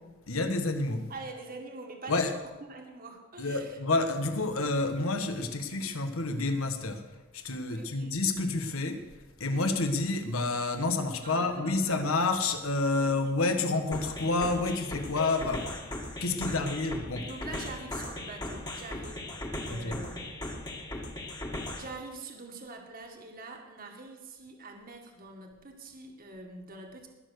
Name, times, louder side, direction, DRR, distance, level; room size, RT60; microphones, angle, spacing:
voice 1, 0.3-1.1 2.1-2.4 3.4-7.0 7.3-9.0 9.4-15.7 16.2-17.3 19.7-20.0, left 3 dB, 85° left, 7 dB, 1.5 m, -29 dB
voice 2, 1.1-3.8 7.7-8.2 11.2-12.0 13.0-13.4 16.4-16.9 17.3-19.3 19.6-20.3 21.8-27.1, right 3 dB, 45° right, 2 dB, 2.0 m, -45 dB
sound 1, 13.9-21.9, left 1 dB, 20° left, 1.9 m, -38 dB
20.5 x 7.0 x 6.6 m, 1.2 s
head